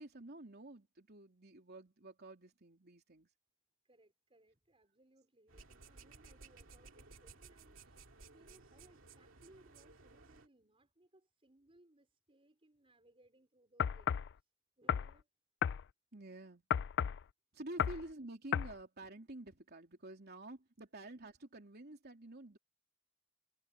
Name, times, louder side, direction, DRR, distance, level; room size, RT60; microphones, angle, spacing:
voice 1, 0.0-3.3 16.1-16.6 17.5-22.6, right 1 dB, 50° right, 3.4 m, -50 dB
voice 2, 3.8-14.5 14.8-15.3 17.9-18.0, right 1 dB, 30° right, 5.1 m, -67 dB
sound 1, 5.5-10.5, right 3 dB, 75° right, 2.3 m, -58 dB
sound 2, 13.8-14.3 14.9-15.1 15.6-15.8 16.7-17.2 17.8-18.0 18.5-18.7, left 8 dB, 60° left, 0.4 m, -33 dB
head